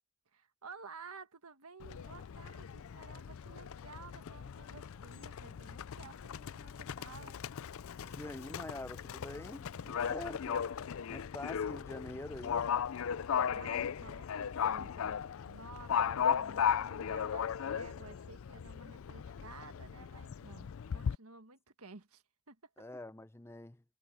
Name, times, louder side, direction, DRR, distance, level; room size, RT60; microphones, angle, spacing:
voice 1, 0.3-7.4 13.1-22.7, right 4 dB, 90° right, 1.7 m, -53 dB
Livestock farm animals working animals, 1.8-21.1, left 7 dB, 70° left, 0.4 m, -37 dB
voice 2, 8.0-10.7 11.1-12.6 22.8-23.8, left 1 dB, 10° left, 0.5 m, -45 dB
head